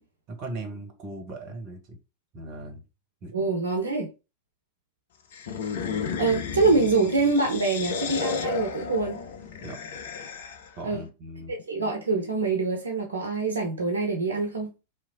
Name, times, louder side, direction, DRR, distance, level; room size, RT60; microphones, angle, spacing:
voice 1, 0.3-2.0 2.3-2.8 3.2-3.3 9.6-9.8 10.8-11.5, right 2 dB, 40° right, 0.9 m, -38 dB
voice 2, 3.3-4.1 6.2-9.2 10.8-11.0 11.5-14.7, right 3 dB, 70° right, 0.5 m, -25 dB
sound 1, 5.3-10.8, left 6 dB, 55° left, 0.4 m, -33 dB
2.9 x 2.2 x 2.6 m
figure-of-eight pair, 90°, 0 cm